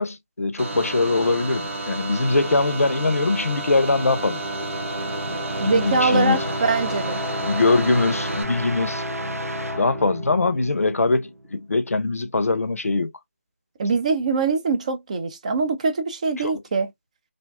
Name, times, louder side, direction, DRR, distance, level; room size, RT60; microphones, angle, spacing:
voice 1, 0.0-4.4 5.6-6.4 7.4-9.0 9.8-13.1 16.4-16.5, left 3 dB, 85° left, 0.5 m, -22 dB
sound 1, 0.6-8.4, right 2 dB, 65° right, 0.9 m, -31 dB
sound 2, 3.8-11.5, equal, 90° right, 0.5 m, -31 dB
voice 2, 5.6-7.2 13.8-16.9, right 4 dB, 30° right, 0.3 m, -23 dB
2.5 x 2.1 x 2.3 m
figure-of-eight pair, 160°, 8 cm